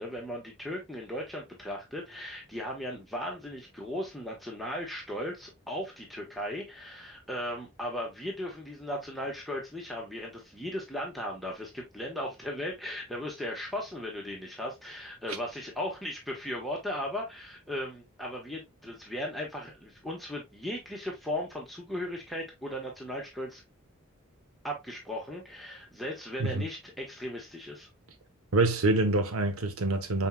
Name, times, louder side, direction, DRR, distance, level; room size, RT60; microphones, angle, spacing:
voice 1, 0.0-23.6 24.6-27.9, left 1 dB, ahead, 1.1 m, -37 dB
voice 2, 28.5-30.3, right 2 dB, 85° right, 0.9 m, -26 dB
5.4 x 4.2 x 2.2 m
head